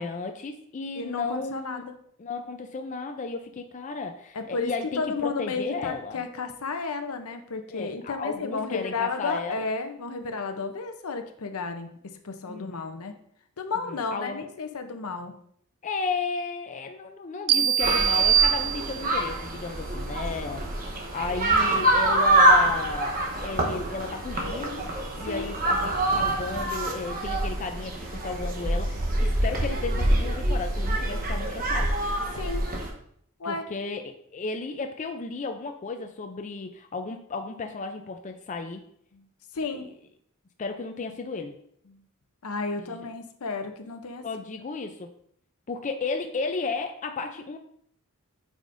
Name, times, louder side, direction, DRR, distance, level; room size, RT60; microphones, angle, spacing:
voice 1, 0.0-1.8 2.2-6.2 7.7-9.7 12.5-13.0 13.9-14.5 15.8-32.0 33.4-38.8 39.7-39.9 40.6-41.5 42.8-42.9 44.2-45.1 45.7-47.6, left 4 dB, 35° left, 5 dB, 0.4 m, -34 dB
voice 2, 1.0-1.9 4.3-4.7 5.0-13.2 13.6-15.3 24.0-24.1 25.2-25.5 32.3-32.7 33.4-33.6 39.1-39.2 39.5-39.9 42.4-44.2, left 4 dB, 75° left, 7 dB, 0.7 m, -32 dB
sound 1, 17.5-19.3, right 10 dB, 70° right, 0.4 m, -23 dB
sound 2, 17.8-32.9, right 1 dB, 40° right, 1.0 m, -25 dB
9.0 x 5.0 x 2.6 m, 0.68 s
head